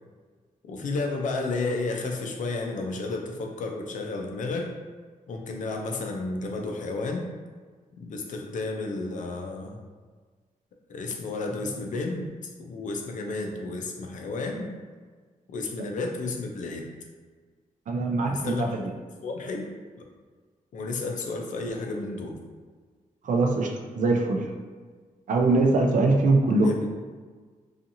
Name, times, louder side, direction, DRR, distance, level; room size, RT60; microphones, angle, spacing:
voice 1, 0.6-4.7 5.3-7.3 8.0-9.8 10.9-12.3 12.6-14.7 15.5-16.8 18.2-18.7 19.2-19.7 20.0-20.1 20.7-22.3 26.6-26.9, left 3 dB, 65° left, 2 dB, 0.4 m, -32 dB
voice 2, 17.9-18.8 23.2-23.7 24.0-24.5 25.3-26.7, right 2 dB, 65° right, 2 dB, 0.4 m, -22 dB
2.7 x 2.4 x 2.6 m, 1.5 s
wide cardioid pair, 170°, 14 cm